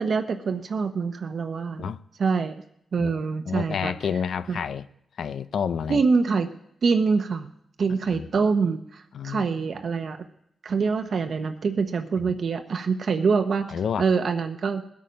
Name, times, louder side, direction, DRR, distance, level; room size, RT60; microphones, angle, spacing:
voice 1, 0.0-1.9 2.2-2.6 2.9-3.9 4.5-4.6 5.9-6.5 6.8-7.5 7.8-10.2 10.6-14.8, right 5 dB, 60° right, 0.8 m, -25 dB
voice 2, 3.5-4.9 5.2-6.0 8.1-8.3 9.1-9.5 12.2-12.4 13.7-14.1, left 7 dB, 75° left, 0.5 m, -29 dB
19.5 x 8.6 x 5.2 m
cardioid pair, 105°, 0 cm